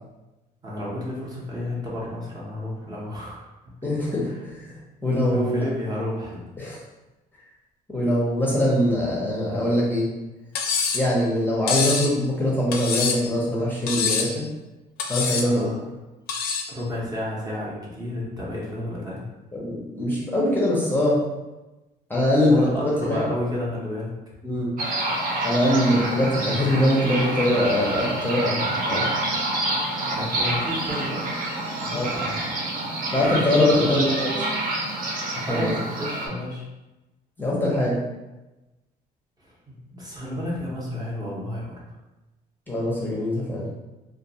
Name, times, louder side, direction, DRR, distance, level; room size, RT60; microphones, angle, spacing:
voice 1, 0.6-3.4 5.3-6.4 15.4-15.8 16.7-19.3 22.5-24.1 30.1-31.2 31.8-32.6 33.3-33.5 33.8-34.1 35.5-36.6 39.4-41.8, left 1 dB, 20° right, -5 dB, 0.7 m, -31 dB
voice 2, 3.8-5.6 6.6-6.8 7.9-10.1 10.9-14.5 15.1-15.9 19.5-21.2 22.1-23.2 24.4-24.7 25.4-29.1 31.9-32.1 33.1-34.3 35.5-35.7 37.4-38.0 42.7-43.7, left 1 dB, 10° left, -6 dB, 0.6 m, -23 dB
Cutlery silverware, 10.5-11.1 11.7-12.1 12.7-13.3 13.9-14.4 15.0-15.5 16.3-16.7, left 5 dB, 65° left, 0.4 m, -25 dB
sound 1, 24.8-36.3, right 2 dB, 55° right, 0.6 m, -27 dB
2.3 x 2.3 x 2.7 m, 1.1 s
cardioid pair, 110°, 17 cm